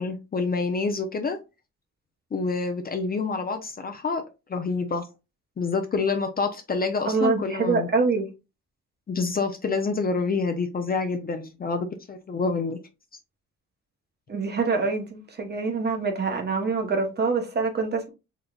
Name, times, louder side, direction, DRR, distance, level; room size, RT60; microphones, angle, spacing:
voice 1, 0.0-1.4 2.3-4.2 4.5-5.0 5.6-7.9 9.1-12.8, left 4 dB, 30° left, 0.6 m, -27 dB
voice 2, 7.1-8.3 14.3-18.1, right 4 dB, 35° right, 0.9 m, -25 dB
3.8 x 3.1 x 2.3 m
cardioid pair, 90°, 30 cm